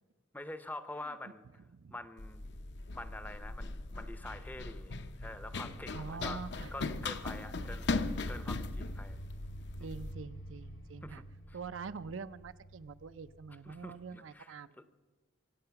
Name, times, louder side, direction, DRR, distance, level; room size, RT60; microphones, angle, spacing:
voice 1, 0.3-1.6 1.9-2.4 2.9-6.4 6.7-8.0 8.3-9.2 9.8-10.0 11.0-11.6 13.6-14.8, left 2 dB, 10° left, 12 dB, 0.6 m, -46 dB
Run, 2.2-10.1, left 3 dB, 55° left, 0.7 m, -39 dB
voice 2, 5.9-6.7 9.8-11.2 11.5-14.7, right 5 dB, 70° right, 13 dB, 0.5 m, -45 dB
sound 1, 6.3-14.2, equal, 75° left, 1.9 m, -48 dB
24.5 x 8.7 x 5.8 m, 1.3 s
head